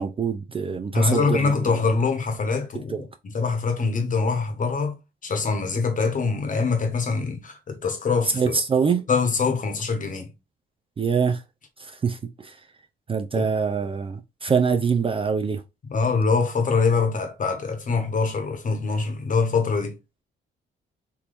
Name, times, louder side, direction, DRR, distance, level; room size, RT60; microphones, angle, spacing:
voice 1, 0.0-1.8 2.9-3.1 8.3-9.1 11.0-11.4 11.8-12.6 13.1-15.6, right 5 dB, 25° right, 0.4 m, -24 dB
voice 2, 0.9-3.1 3.3-8.5 9.1-10.3 13.3-13.5 15.9-20.0, left 4 dB, 40° left, 1.2 m, -24 dB
3.5 x 3.0 x 2.5 m
cardioid pair, 90°, 20 cm